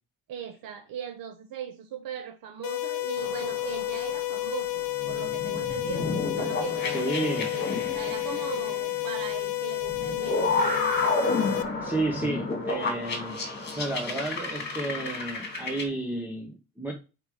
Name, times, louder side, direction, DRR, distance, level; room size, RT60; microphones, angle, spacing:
voice 1, 0.3-6.0 6.4-10.6, right 9 dB, 60° right, 0.9 m, -39 dB
sound 1, 2.6-11.6, left 16 dB, 65° left, 0.9 m, -31 dB
sound 2, 3.2-4.3 5.0-9.3 9.8-15.8, left 3 dB, 30° left, 2.1 m, -31 dB
voice 2, 6.8-7.5 11.4-13.4 13.8-16.9, right 2 dB, 5° right, 0.9 m, -32 dB
5.3 x 4.9 x 4.8 m
cardioid pair, 155°, 38 cm